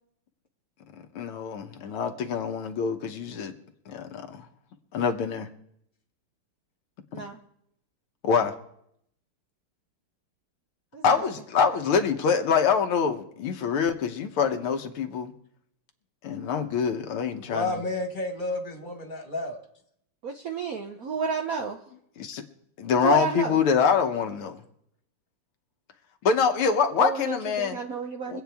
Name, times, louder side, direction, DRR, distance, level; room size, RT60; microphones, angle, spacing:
voice 1, 1.2-3.5 3.9-4.4 4.9-5.5 8.2-8.5 11.0-15.3 16.2-17.8 22.2-22.4 22.8-24.6 26.2-27.8 28.3-28.4, left 6 dB, 80° left, 1.9 m, -25 dB
voice 2, 17.4-19.6, left 2 dB, 25° left, 1.6 m, -31 dB
voice 3, 20.2-21.8 23.0-23.6 27.0-28.4, right 6 dB, 60° right, 0.9 m, -31 dB
24.5 x 8.5 x 3.5 m
omnidirectional pair, 2.4 m